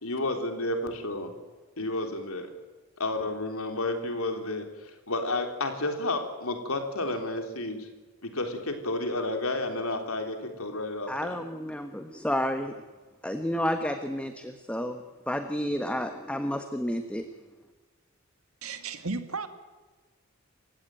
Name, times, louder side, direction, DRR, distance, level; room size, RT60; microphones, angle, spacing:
voice 1, 0.0-1.3 1.8-2.5 3.0-4.6 5.1-7.9 8.2-11.4, left 2 dB, 80° left, 6 dB, 3.8 m, -31 dB
voice 2, 11.1-12.7 13.2-17.2, equal, 5° left, 7 dB, 1.2 m, -31 dB
voice 3, 18.6-19.5, right 4 dB, 85° right, 9 dB, 2.4 m, -34 dB
29.0 x 16.5 x 9.1 m, 1.3 s
head